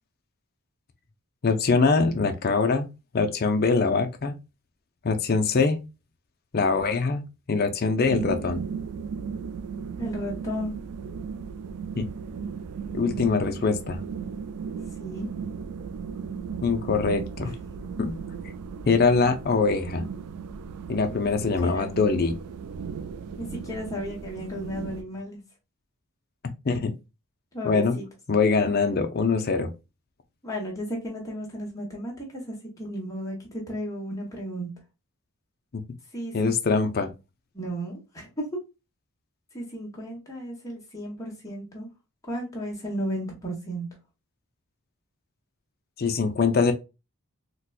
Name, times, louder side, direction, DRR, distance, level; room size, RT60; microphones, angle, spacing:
voice 1, 1.4-2.9 3.1-4.3 5.0-5.8 6.5-8.6 12.0-12.1 12.9-14.0 16.6-17.5 18.0-18.1 18.9-20.0 20.9-22.4 26.6-26.9 27.6-28.0 28.3-29.7 35.7-35.8 36.3-37.1 46.0-46.7, left 4 dB, 45° left, 0.5 m, -23 dB
sound 1, 8.0-25.0, right 6 dB, 85° right, 0.3 m, -36 dB
voice 2, 10.0-10.7 15.0-15.3 17.4-17.5 21.1-21.9 23.4-25.4 27.5-28.0 30.4-34.7 36.1-36.5 37.5-38.5 39.5-41.9 42.3-43.9, equal, 15° left, 1.1 m, -34 dB
4.0 x 2.2 x 2.3 m
head